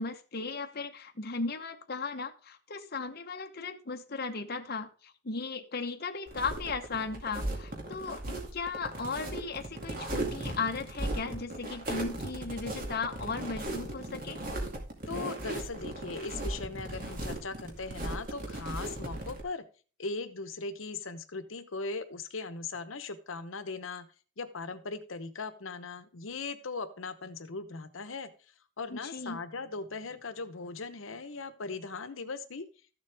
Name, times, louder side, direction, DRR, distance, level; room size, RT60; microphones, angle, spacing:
voice 1, 0.0-14.4 28.9-29.4, left 4 dB, 50° left, 5 dB, 0.9 m, -36 dB
sound 1, 6.3-19.4, right 1 dB, 45° right, 2.4 m, -37 dB
voice 2, 15.1-19.6 20.0-24.1 24.4-28.3 28.8-32.6, left 3 dB, 75° left, 10 dB, 0.9 m, -39 dB
14.0 x 7.2 x 3.5 m, 0.38 s
head